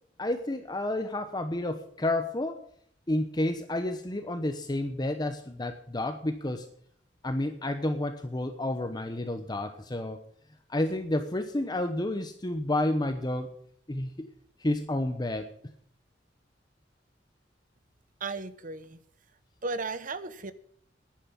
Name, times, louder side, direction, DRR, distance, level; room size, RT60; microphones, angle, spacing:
voice 1, 0.2-2.6 3.1-6.7 7.2-10.2 10.7-13.5 13.9-14.3 14.6-15.5, left 1 dB, 25° left, 7 dB, 0.9 m, -30 dB
voice 2, 18.2-19.0 19.6-20.5, right 3 dB, 50° right, 13 dB, 1.0 m, -35 dB
10.5 x 10.0 x 8.6 m, 0.65 s
head